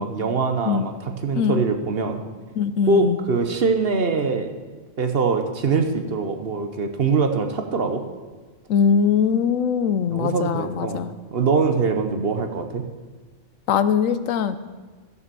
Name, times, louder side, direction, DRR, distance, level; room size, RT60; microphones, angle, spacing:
voice 1, 0.0-2.2 2.9-4.5 5.0-8.0 10.1-12.8, right 4 dB, 50° right, 6 dB, 1.0 m, -23 dB
voice 2, 2.6-3.2 8.7-11.1 13.7-14.6, left 7 dB, 75° left, 13 dB, 1.0 m, -21 dB
13.5 x 6.9 x 6.8 m, 1.4 s
omnidirectional pair, 1.4 m